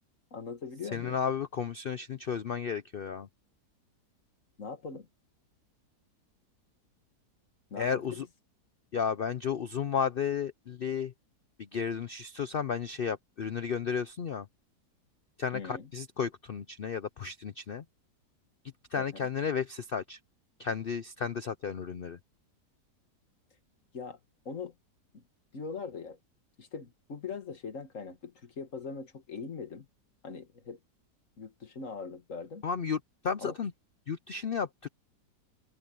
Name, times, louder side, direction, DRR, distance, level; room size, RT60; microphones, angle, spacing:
voice 1, 0.3-1.2 4.6-5.1 7.7-8.2 15.5-15.9 19.0-19.3 23.9-24.2 24.5-24.7 25.1-25.2 25.5-26.2 26.6-29.9 30.2-30.8 31.4-32.6 33.4-33.6, left 5 dB, 50° left, 2.0 m, -41 dB
voice 2, 0.9-3.3 7.8-8.3 8.9-11.1 11.6-14.5 15.4-17.8 18.9-20.2 20.6-22.2 32.6-33.7 34.1-34.9, left 6 dB, 90° left, 0.4 m, -33 dB
open air
omnidirectional pair, 1.8 m